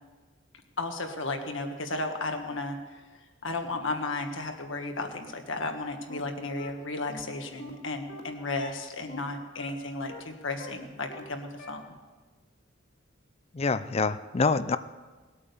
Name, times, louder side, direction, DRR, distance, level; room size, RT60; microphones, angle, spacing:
voice 1, 0.8-3.0 3.4-11.8, left 2 dB, 70° left, 5 dB, 1.6 m, -34 dB
sound 1, 5.6-5.7 6.1-6.2 6.6-6.7 7.1-7.2 7.6-7.7 8.1-8.2 8.6-8.7 9.1-9.2 9.6-9.7 10.1-10.2 10.6-10.7 11.1-11.2 11.6-11.7, left 1 dB, 55° left, 2.2 m, -42 dB
voice 2, 13.5-14.8, left 4 dB, 30° left, 13 dB, 0.5 m, -26 dB
19.0 x 8.7 x 7.0 m, 1.3 s
head